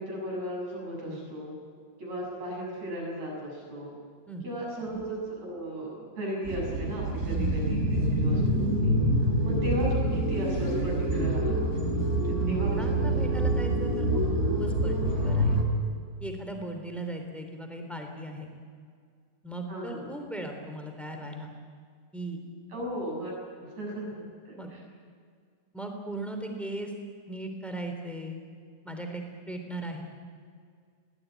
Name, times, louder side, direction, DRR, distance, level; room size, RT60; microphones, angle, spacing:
voice 1, 0.0-1.6 2.0-4.0 4.4-8.4 8.8-8.9 9.4-11.6 12.3-12.8 13.2-13.4 19.7-20.1 22.7-23.3 23.6-24.8, equal, 50° right, -2 dB, 8.5 m, -35 dB
sound 1, 6.4-15.6, right 1 dB, 20° right, 4.0 m, -26 dB
voice 2, 7.2-7.6 12.4-15.6 16.2-18.5 19.4-21.5 22.1-22.4 24.6-24.7 25.7-26.9 27.3-28.4 28.8-30.0, right 1 dB, ahead, 4 dB, 2.9 m, -38 dB
21.5 x 18.0 x 9.5 m, 2.1 s
omnidirectional pair, 3.8 m